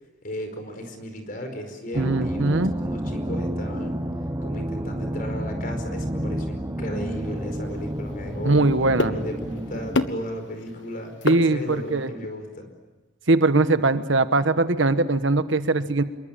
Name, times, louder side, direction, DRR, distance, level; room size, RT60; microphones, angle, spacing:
voice 1, 0.2-4.0 4.4-11.1 11.5-12.7, equal, 45° left, 6 dB, 5.0 m, -35 dB
sound 1, 1.9-10.1, right 1 dB, 15° right, 1.2 m, -30 dB
voice 2, 2.0-2.7 8.4-9.1 11.2-12.1 13.3-16.0, right 2 dB, 75° right, 11 dB, 1.3 m, -21 dB
sound 2, 7.0-12.1, left 2 dB, 70° left, 1.5 m, -32 dB
27.0 x 23.0 x 8.9 m, 1.2 s
head